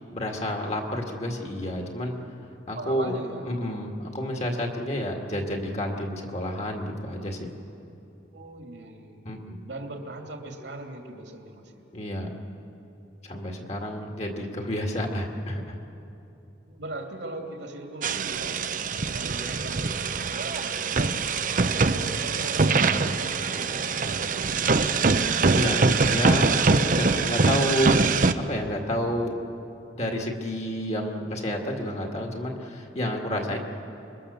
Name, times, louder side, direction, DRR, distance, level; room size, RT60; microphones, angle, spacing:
voice 1, 0.1-2.1 2.7-3.2 3.5-7.5 9.3-9.6 11.9-12.3 13.2-15.8 25.5-28.0 28.4-29.4 30.0-33.6, left 1 dB, 35° left, 2 dB, 2.1 m, -30 dB
voice 2, 2.7-3.5 8.3-9.3 9.6-11.8 16.7-18.7 19.1-20.0 20.3-21.2 21.7-25.3, right 1 dB, 70° right, 2 dB, 2.8 m, -40 dB
sound 1, 18.0-28.3, right 4 dB, 45° right, 0.7 m, -23 dB
26.0 x 22.5 x 7.0 m, 2.9 s
head